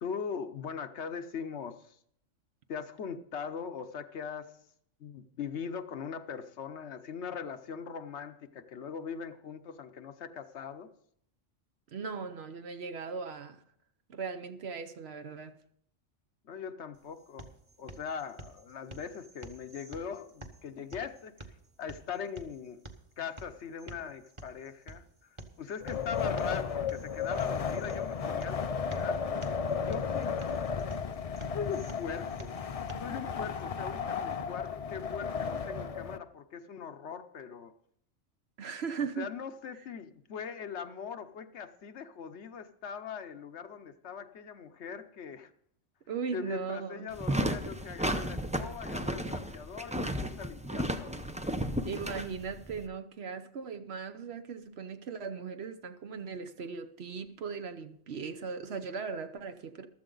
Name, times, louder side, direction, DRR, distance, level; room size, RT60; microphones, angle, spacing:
voice 1, 0.0-2.0 2.7-4.5 5.0-10.9 16.4-17.5 17.8-21.4 21.8-22.8 23.2-25.0 25.6-30.3 31.5-32.5 33.0-37.7 39.2-45.5 46.3-51.3, left 7 dB, 65° left, 1.0 m, -41 dB
voice 2, 11.9-13.6 14.1-15.6 38.6-39.3 46.1-47.1 51.8-59.9, right 5 dB, 60° right, 1.0 m, -38 dB
sound 1, 16.9-32.9, right 2 dB, 25° right, 1.1 m, -50 dB
Wind, 25.8-36.2, left 6 dB, 50° left, 0.4 m, -34 dB
sound 2, 47.1-52.8, right 1 dB, 10° right, 0.4 m, -34 dB
15.0 x 13.0 x 3.9 m
omnidirectional pair, 1.3 m